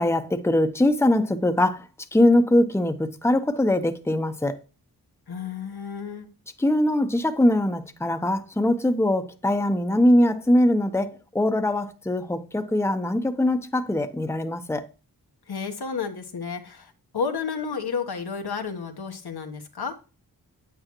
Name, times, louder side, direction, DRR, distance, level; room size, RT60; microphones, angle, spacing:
voice 1, 0.0-1.8 2.1-4.6 6.6-14.9, left 1 dB, 5° left, 0.8 m, -22 dB
voice 2, 5.3-6.3 15.5-19.9, left 5 dB, 75° left, 1.2 m, -31 dB
9.4 x 9.0 x 3.0 m
wide cardioid pair, 105°, 38 cm